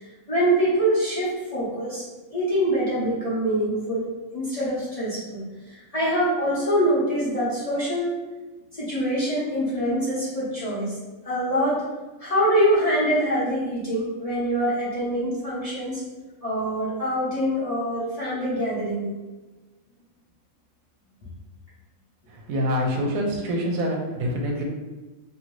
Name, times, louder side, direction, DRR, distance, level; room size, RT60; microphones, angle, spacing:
voice 1, 0.3-2.0 2.3-4.1 4.3-5.4 5.9-8.1 8.8-10.9 11.2-11.8 12.2-16.0 16.4-19.1, equal, 30° left, -10 dB, 0.8 m, -24 dB
voice 2, 22.3-24.6, equal, 80° right, 0 dB, 1.0 m, -26 dB
2.7 x 2.5 x 3.0 m, 1.2 s
omnidirectional pair, 1.5 m